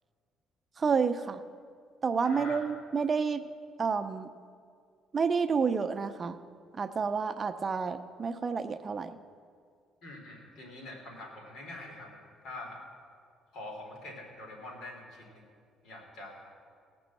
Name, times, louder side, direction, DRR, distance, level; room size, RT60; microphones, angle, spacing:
voice 1, 0.8-1.4 2.0-3.4 3.8-4.3 5.1-6.4 6.8-9.1, right 5 dB, 30° right, 9 dB, 0.5 m, -29 dB
voice 2, 2.2-2.7 10.0-12.8 13.5-15.4 15.8-16.5, left 2 dB, 70° left, 0 dB, 3.4 m, -45 dB
18.0 x 6.1 x 7.6 m, 2.2 s
cardioid pair, 115°, 0 cm